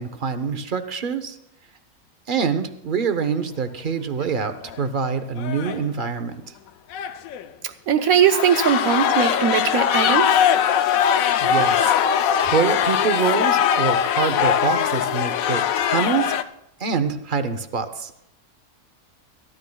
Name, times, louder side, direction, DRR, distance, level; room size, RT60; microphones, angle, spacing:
voice 1, 0.0-1.4 2.3-6.3 11.4-16.2 16.8-18.1, right 6 dB, 45° right, 10 dB, 0.7 m, -25 dB
sound 1, 4.2-4.4 4.7-4.8 5.4-5.8 6.9-7.5 8.0-16.4, left 8 dB, 70° left, 1.0 m, -21 dB
voice 2, 7.9-10.3, right 8 dB, 70° right, 8 dB, 1.1 m, -19 dB
22.5 x 13.5 x 2.3 m, 0.79 s
omnidirectional pair, 1.6 m